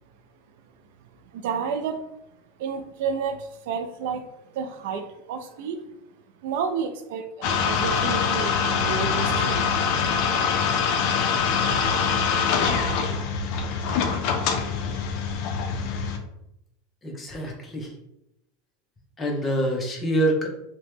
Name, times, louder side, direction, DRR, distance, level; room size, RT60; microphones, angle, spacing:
voice 1, 1.3-2.0 2.6-5.9 6.4-9.8, right 6 dB, 70° right, 8 dB, 0.3 m, -31 dB
sound 1, 7.4-16.2, left 6 dB, 55° left, 0.4 m, -24 dB
voice 2, 17.0-17.9 19.2-20.5, right 1 dB, 20° left, 1 dB, 0.6 m, -25 dB
2.9 x 2.1 x 3.2 m, 0.84 s
supercardioid pair, 135°, 0 cm